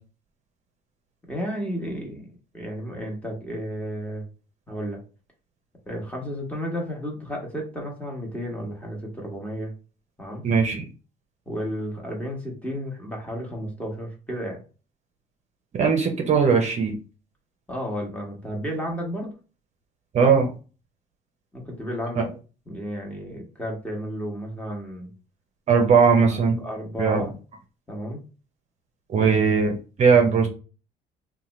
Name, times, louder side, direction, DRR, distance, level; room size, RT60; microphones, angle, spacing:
voice 1, 1.3-2.3 2.5-4.3 4.7-5.0 5.9-9.7 10.2-10.4 11.5-14.6 17.7-19.3 20.2-20.4 21.5-22.3 22.7-25.1 26.3-27.3 27.9-28.2 29.2-29.3, equal, 10° left, -1 dB, 1.0 m, -32 dB
voice 2, 10.4-10.9 15.7-16.9 20.1-20.5 25.7-26.6 27.0-27.2 29.1-29.7 30.0-30.5, right 5 dB, 40° right, 2 dB, 0.6 m, -19 dB
2.9 x 2.2 x 3.0 m, 0.35 s
cardioid pair, 110°, 17 cm